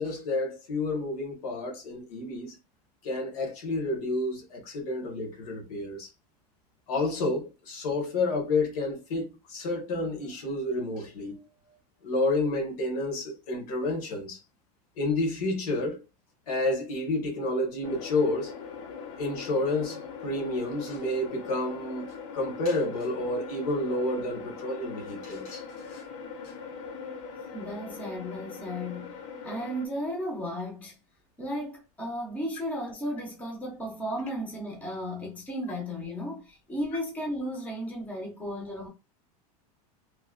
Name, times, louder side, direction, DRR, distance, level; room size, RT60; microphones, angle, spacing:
voice 1, 0.0-2.6 3.0-6.1 6.9-11.4 12.0-14.4 15.0-16.0 16.5-18.5 19.2-22.1 22.3-26.0, left 2 dB, 80° left, 1.4 m, -30 dB
sound 1, 17.8-29.9, left 5 dB, 55° left, 0.7 m, -41 dB
voice 2, 27.5-31.0 31.4-38.9, equal, 10° left, 0.6 m, -34 dB
3.1 x 2.3 x 2.4 m
supercardioid pair, 175°, 19 cm